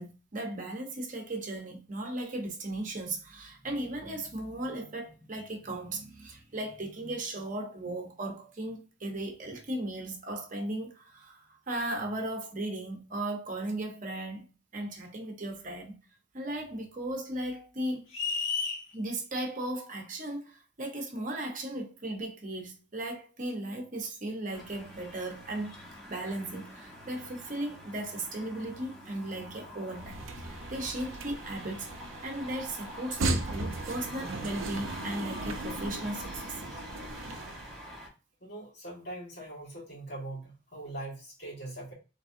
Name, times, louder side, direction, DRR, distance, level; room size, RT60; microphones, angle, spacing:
voice 1, 0.0-14.4 14.7-16.0 16.3-18.1 18.9-25.7 26.1-31.9 32.2-36.6, right 1 dB, 40° right, 0.9 m, -36 dB
sound 1, 18.1-18.8, left 5 dB, 75° left, 1.4 m, -31 dB
sound 2, 24.5-38.1, left 1 dB, ahead, 1.4 m, -46 dB
sound 3, 29.9-37.8, right 2 dB, 85° right, 0.6 m, -37 dB
voice 2, 38.4-41.9, right 1 dB, 55° left, 2.0 m, -41 dB
3.9 x 3.4 x 2.6 m
head